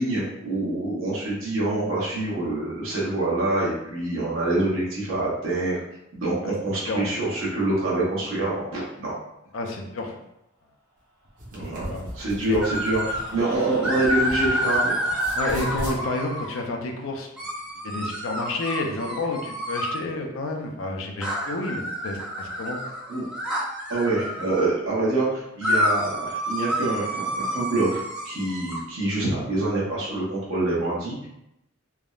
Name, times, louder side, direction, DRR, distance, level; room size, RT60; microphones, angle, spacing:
voice 1, 0.0-5.8 6.1-9.2 11.5-15.1 23.1-23.2 23.9-31.3, right 2 dB, 75° right, -7 dB, 0.9 m, -26 dB
voice 2, 9.5-10.2 11.9-12.1 12.5-12.6 15.3-17.3 17.8-22.8, left 2 dB, 75° left, 3 dB, 0.5 m, -30 dB
sound 1, 11.2-14.8 15.1-16.0, equal, 40° right, 0.8 m, -37 dB
Screaming, 11.5-16.0, equal, 55° right, 1.3 m, -39 dB
sound 2, 12.6-13.3 13.8-16.6 17.4-20.0 21.2-24.6 25.6-28.8, equal, 5° right, 0.4 m, -28 dB
3.4 x 2.0 x 2.3 m, 0.84 s
head